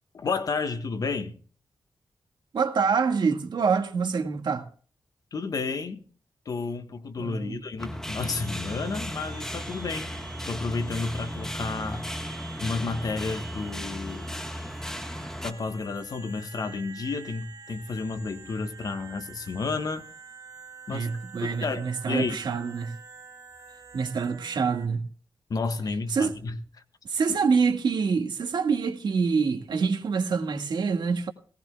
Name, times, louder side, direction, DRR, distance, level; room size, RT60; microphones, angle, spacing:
voice 1, 0.1-1.4 5.3-6.0 6.4-10.2 10.5-12.1 12.6-14.3 15.4-20.1 20.9-21.1 21.4-22.4 25.5-26.6 27.3-27.4, left 4 dB, 55° left, 1.5 m, -31 dB
voice 2, 2.5-4.7 7.2-7.6 20.9-23.0 23.9-25.1 26.1-26.3 27.1-31.3, right 5 dB, 75° right, 1.9 m, -26 dB
sound 1, 7.8-15.5, equal, 5° left, 1.5 m, -36 dB
sound 2, 8.2-24.9, right 5 dB, 55° right, 3.7 m, -47 dB
19.5 x 18.0 x 2.3 m
wide cardioid pair, 140°, 8 cm